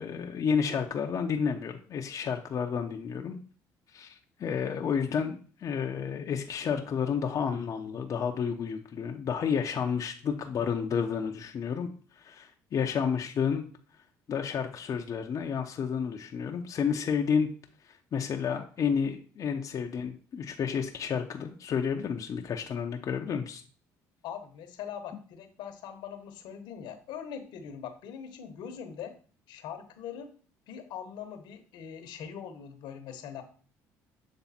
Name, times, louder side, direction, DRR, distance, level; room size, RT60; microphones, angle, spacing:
voice 1, 0.0-3.4 3.9-13.6 14.3-17.5 17.8-23.6, left 6 dB, 45° left, 2 dB, 0.7 m, -31 dB
voice 2, 24.2-29.1 29.5-30.3 30.7-33.4, left 8 dB, 75° left, 8 dB, 1.0 m, -42 dB
7.1 x 3.4 x 4.2 m, 0.41 s
supercardioid pair, 80°, 8 cm